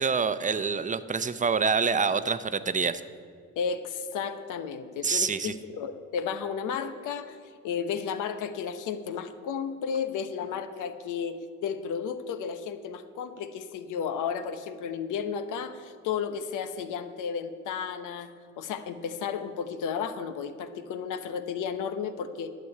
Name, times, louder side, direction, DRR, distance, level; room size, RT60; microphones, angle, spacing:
voice 1, 0.0-3.0 5.0-5.5, right 5 dB, 25° right, 12 dB, 0.6 m, -26 dB
voice 2, 3.6-7.4 7.6-22.5, left 7 dB, 90° left, 10 dB, 0.9 m, -33 dB
11.5 x 7.0 x 9.5 m, 2.1 s
cardioid pair, 90°, 30 cm